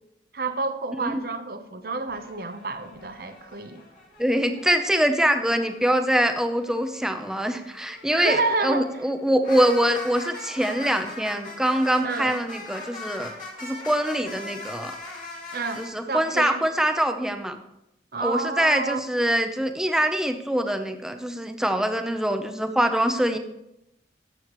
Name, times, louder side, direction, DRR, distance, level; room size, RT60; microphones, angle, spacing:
voice 1, 0.3-3.8 8.1-8.9 12.0-12.4 15.5-16.6 18.1-19.0, right 3 dB, 55° right, 9 dB, 0.8 m, -29 dB
sound 1, 2.0-4.9 5.4-15.9, left 2 dB, 45° left, 2.2 m, -41 dB
voice 2, 4.2-13.3 13.6-14.9 15.8-17.6 18.2-23.4, right 1 dB, 5° right, 6 dB, 0.6 m, -24 dB
14.0 x 7.7 x 3.0 m, 0.85 s
head